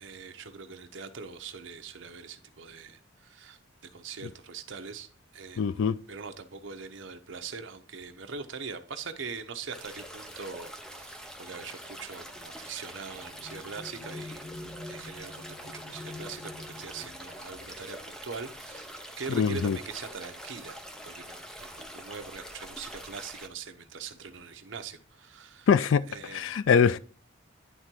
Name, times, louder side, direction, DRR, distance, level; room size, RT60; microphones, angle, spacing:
voice 1, 0.0-5.1 5.3-5.7 6.1-14.4 14.9-20.8 21.1-25.7 26.1-26.6, right 5 dB, 70° right, 0.9 m, -42 dB
voice 2, 5.6-6.0 19.3-19.8 25.7-26.0 26.3-27.0, left 6 dB, 75° left, 0.3 m, -23 dB
sound 1, 9.7-23.5, equal, 5° left, 0.6 m, -45 dB
sound 2, 10.6-19.6 20.5-20.6 21.0-21.5, left 2 dB, 60° left, 1.9 m, -48 dB
10.5 x 3.7 x 4.5 m
head